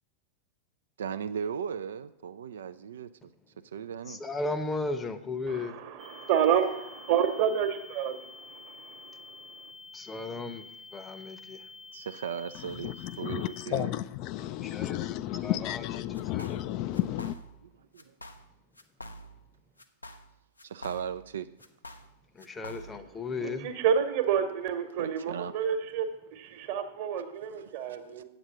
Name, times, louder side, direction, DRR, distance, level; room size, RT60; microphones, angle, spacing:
voice 1, 1.0-3.1 3.6-4.2 11.9-13.9 17.6-18.1 20.6-21.5 25.0-25.5 28.2-28.3, right 7 dB, 65° right, 0.3 m, -37 dB
voice 2, 4.1-5.8 9.9-11.7 14.6-15.0 15.4-15.8 16.3-16.4 22.3-23.7, left 3 dB, 15° left, 0.8 m, -35 dB
voice 3, 5.5-9.6 23.4-28.2, right 8 dB, 50° right, 1.2 m, -29 dB
sound 1, 6.0-13.6, left 4 dB, 20° right, 0.6 m, -49 dB
voice 4, 12.8-17.4, left 13 dB, 40° left, 0.4 m, -32 dB
sound 2, 16.1-16.7 16.9-17.7 18.0-18.5 18.7-19.5 19.8-21.3 21.6-23.1, equal, 85° left, 0.6 m, -46 dB
8.0 x 7.8 x 6.0 m
figure-of-eight pair, 90°, 0 cm